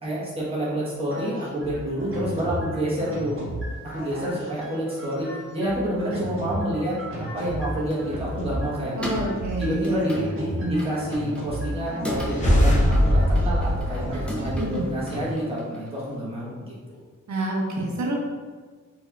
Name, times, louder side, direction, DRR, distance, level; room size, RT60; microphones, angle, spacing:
voice 1, 0.0-3.3 3.9-6.9 7.3-9.0 9.6-17.0, right 1 dB, 20° right, -8 dB, 1.0 m, -28 dB
sound 1, 1.1-15.3, right 1 dB, 45° right, 0.9 m, -34 dB
sound 2, 7.4-16.2, equal, 5° left, 0.4 m, -38 dB
voice 2, 9.0-10.0 10.6-10.9 14.6-14.9 17.3-18.2, right 1 dB, 70° right, -1 dB, 0.7 m, -28 dB
sound 3, 12.1-14.9, equal, 25° left, 0.8 m, -22 dB
4.2 x 2.8 x 2.2 m, 1.4 s
wide cardioid pair, 180°, 30 cm